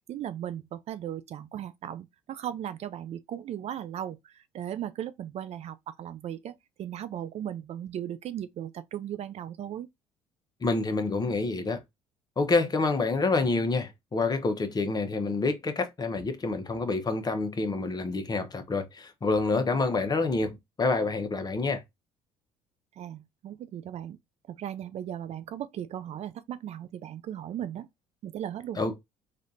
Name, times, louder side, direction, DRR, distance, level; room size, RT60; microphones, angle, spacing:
voice 1, 0.1-9.9 23.0-24.2 24.5-27.9 28.2-28.8, right 10 dB, 50° right, 0.4 m, -37 dB
voice 2, 10.6-11.8 12.4-21.8 28.8-28.9, left 3 dB, 30° left, 0.8 m, -27 dB
3.4 x 2.5 x 2.7 m
supercardioid pair, 70°, 14 cm